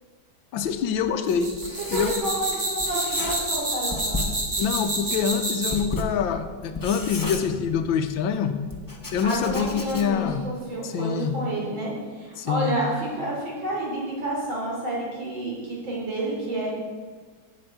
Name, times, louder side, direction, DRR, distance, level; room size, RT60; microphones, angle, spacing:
voice 1, 0.5-1.5 1.9-2.1 4.6-8.6 9.1-10.4 10.8-11.3 12.4-12.8, left 7 dB, 80° left, 9 dB, 1.4 m, -25 dB
Writing, 0.6-2.5 2.8-3.6 3.9-8.1 8.7-10.3, left 2 dB, 30° left, 0.3 m, -34 dB
sound 1, 1.3-5.9, right 2 dB, 40° right, 2.5 m, -28 dB
voice 2, 1.8-4.3 9.2-16.7, right 1 dB, 80° right, -4 dB, 4.2 m, -30 dB
7.9 x 7.5 x 8.0 m, 1.5 s
omnidirectional pair, 2.1 m